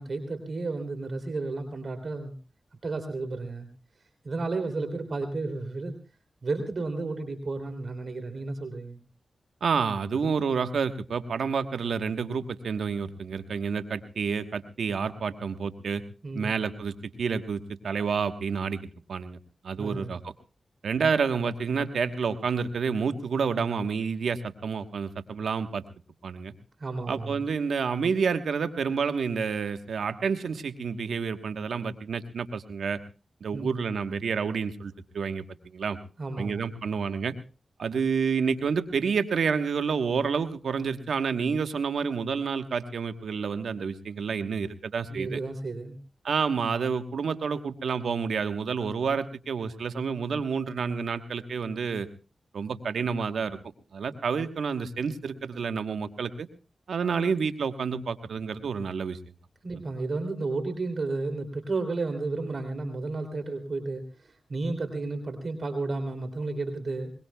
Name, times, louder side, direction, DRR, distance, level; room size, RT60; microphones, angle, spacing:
voice 1, 0.0-2.3 2.8-3.7 4.2-6.0 6.4-9.0 16.2-16.5 19.8-20.2 26.8-27.4 33.5-33.7 36.2-36.6 45.1-46.0 59.6-67.1, right 3 dB, 60° right, 7 dB, 2.9 m, -32 dB
voice 2, 9.6-16.0 16.3-19.4 19.6-20.3 20.8-25.8 26.2-26.5 27.1-33.0 33.4-36.0 36.4-37.3 37.8-45.4 46.2-52.1 52.5-53.6 53.9-56.5 56.9-59.2, right 5 dB, 85° right, 9 dB, 1.2 m, -29 dB
22.0 x 21.5 x 2.3 m, 0.33 s
cardioid pair, 45°, 0 cm